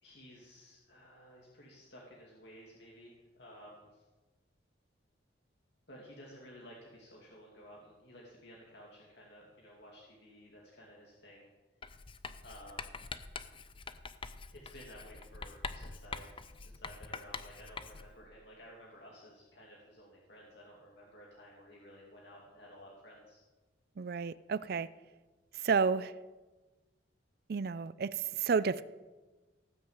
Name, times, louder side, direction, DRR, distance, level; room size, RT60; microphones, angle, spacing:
voice 1, 0.0-4.0 5.9-11.5 12.4-13.0 14.5-23.4, equal, 65° left, -2 dB, 2.4 m, -54 dB
Writing, 11.8-18.2, left 4 dB, 30° left, 0.6 m, -45 dB
voice 2, 24.0-24.9 25.5-26.1 27.5-28.8, right 5 dB, 55° right, 17 dB, 0.4 m, -31 dB
18.0 x 6.3 x 8.1 m, 1.2 s
head